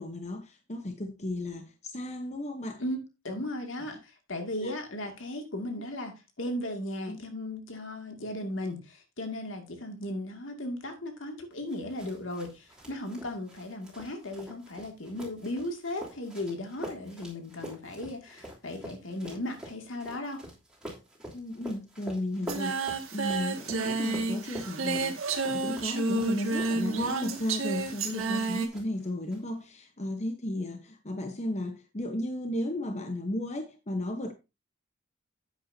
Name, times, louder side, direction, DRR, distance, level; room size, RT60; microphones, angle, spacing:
voice 1, 0.0-2.8 4.6-4.7 7.1-7.2 21.3-34.3, left 1 dB, 35° left, 1.0 m, -34 dB
voice 2, 3.2-20.5, left 1 dB, 70° left, 2.4 m, -36 dB
sound 1, 11.7-28.4 28.7-29.4, right 1 dB, 5° right, 3.2 m, -46 dB
Singing, 22.5-28.7, right 3 dB, 90° right, 2.0 m, -30 dB
10.5 x 8.9 x 2.8 m
head